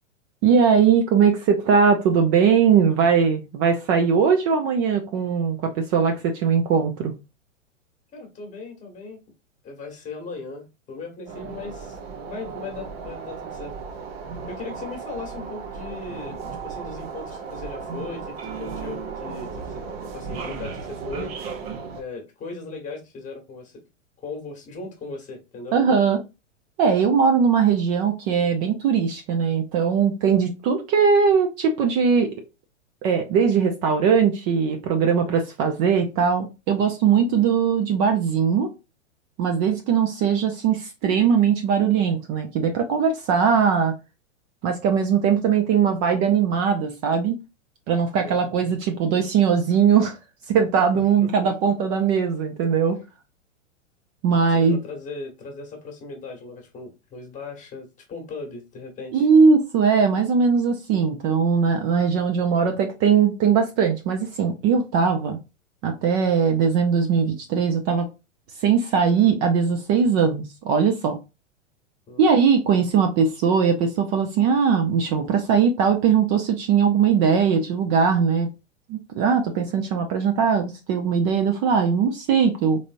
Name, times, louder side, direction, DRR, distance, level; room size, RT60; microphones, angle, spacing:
voice 1, 0.4-7.1 25.7-26.2 26.8-32.3 33.0-38.7 39.4-43.9 44.6-47.4 47.9-50.2 50.5-53.0 54.2-54.8 59.1-65.4 65.8-68.1 68.6-71.2 72.2-78.5 78.9-82.8, right 6 dB, 35° right, 0.7 m, -20 dB
voice 2, 8.1-9.2 9.6-12.0 12.2-13.7 14.5-19.8 20.1-21.3 22.0-23.8 24.2-25.8 48.2-48.6 50.9-51.5 54.5-59.3 72.1-72.3, left 3 dB, 20° left, 1.3 m, -38 dB
sound 1, 11.3-22.0, right 5 dB, 50° right, 1.0 m, -35 dB
3.8 x 3.4 x 2.6 m
hypercardioid pair, 115°, 38 cm